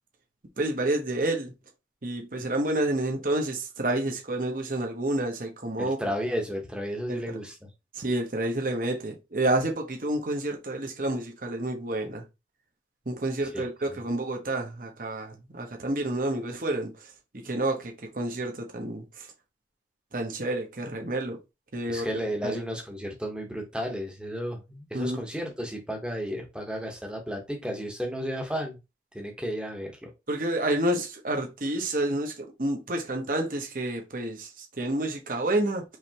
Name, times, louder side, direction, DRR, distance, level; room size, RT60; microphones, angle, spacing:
voice 1, 0.6-1.5 2.0-6.0 7.1-7.4 7.9-12.2 13.1-17.1 17.4-19.3 20.1-21.4 21.7-22.1 22.4-22.6 24.9-25.2 30.3-35.8, right 1 dB, 50° right, 1.0 m, -29 dB
voice 2, 5.8-7.5 13.5-14.0 21.9-28.8 29.1-30.1, equal, 5° right, 1.0 m, -33 dB
4.9 x 3.2 x 2.9 m
head